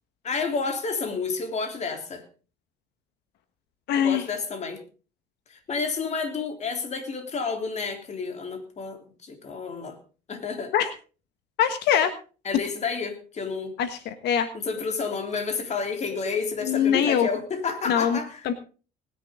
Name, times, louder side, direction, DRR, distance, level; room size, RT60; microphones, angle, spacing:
voice 1, 0.2-2.2 3.9-4.8 5.5-10.0 10.3-10.7 12.5-13.7 14.5-18.4, left 4 dB, 40° left, 6 dB, 3.5 m, -30 dB
voice 2, 3.9-4.3 10.7-10.9 11.6-12.1 13.8-14.5 16.6-17.3 17.9-18.2 18.4-18.5, left 9 dB, 80° left, 10 dB, 1.4 m, -23 dB
19.5 x 10.5 x 3.8 m, 0.36 s
cardioid pair, 110°, 17 cm